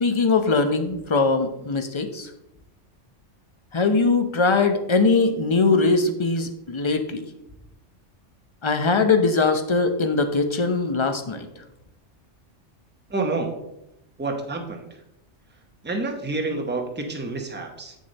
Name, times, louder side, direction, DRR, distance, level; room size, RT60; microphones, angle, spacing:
voice 1, 0.0-2.3 3.7-7.2 8.6-11.5, left 3 dB, 30° left, 7 dB, 0.6 m, -21 dB
voice 2, 13.1-13.5 14.2-14.9 15.8-18.0, right 3 dB, 10° right, 3 dB, 0.8 m, -28 dB
7.3 x 6.6 x 4.0 m, 0.86 s
omnidirectional pair, 1.2 m